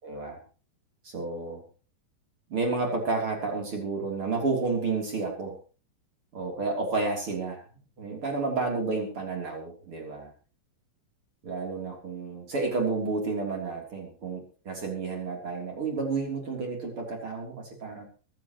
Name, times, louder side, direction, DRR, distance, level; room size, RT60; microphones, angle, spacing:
voice 1, 0.0-0.4 1.0-1.6 2.5-5.6 6.3-7.6 8.0-10.3 11.4-18.1, right 3 dB, 35° right, 1 dB, 3.9 m, -31 dB
24.0 x 11.0 x 3.1 m, 0.36 s
omnidirectional pair, 4.8 m